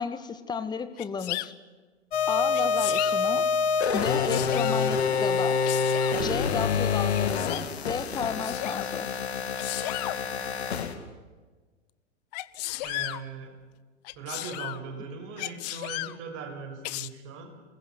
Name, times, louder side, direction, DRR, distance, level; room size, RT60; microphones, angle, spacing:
voice 1, 0.0-1.5 2.3-3.4 3.9-5.7 6.2-9.1, left 5 dB, 10° left, 12 dB, 1.5 m, -33 dB
Sneeze, 1.0-1.5 2.5-3.1 4.0-4.8 5.7-6.2 7.1-7.7 8.4-8.9 9.6-10.2 12.3-13.2 14.0-14.8 15.4-16.2 16.8-17.1, left 19 dB, 35° left, 0.9 m, -34 dB
Z Drop Out, 2.1-10.9, left 5 dB, 60° left, 2.9 m, -27 dB
voice 2, 12.8-13.5 14.2-17.5, right 4 dB, 35° right, 5 dB, 6.3 m, -39 dB
28.0 x 21.0 x 8.0 m, 1.3 s
figure-of-eight pair, 110°, 35 cm